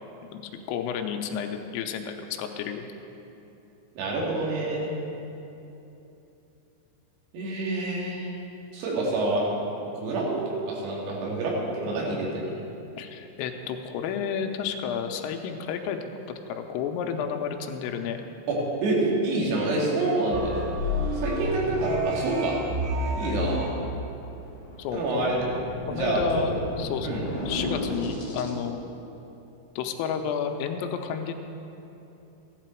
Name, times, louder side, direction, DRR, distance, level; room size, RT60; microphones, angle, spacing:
voice 1, 0.3-2.9 13.0-18.2 24.8-25.3 25.9-28.8 29.8-31.3, left 7 dB, 85° left, 5 dB, 3.3 m, -31 dB
voice 2, 4.0-4.9 7.3-8.3 8.7-9.4 9.9-12.5 18.5-20.6 21.2-22.6 23.2-23.7 24.9-25.4 25.9-26.5 27.0-27.2, right 2 dB, 85° right, -4 dB, 5.0 m, -27 dB
sound 1, 20.3-23.7, equal, 70° right, 3.8 m, -29 dB
sound 2, 20.5-21.7 23.4-28.5, left 1 dB, 40° left, 3.1 m, -36 dB
15.0 x 12.0 x 4.5 m, 2.9 s
omnidirectional pair, 6.0 m